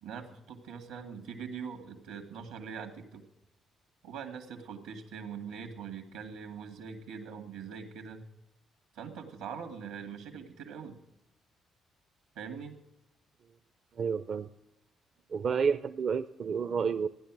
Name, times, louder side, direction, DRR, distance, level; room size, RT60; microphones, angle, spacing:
voice 1, 0.0-3.2 4.0-8.2 8.9-11.0 12.4-12.8, right 6 dB, 85° right, 7 dB, 2.0 m, -42 dB
voice 2, 14.0-14.5 15.3-17.1, right 6 dB, 55° right, 11 dB, 0.5 m, -30 dB
15.0 x 10.0 x 6.1 m, 0.85 s
supercardioid pair, 55°, 0 cm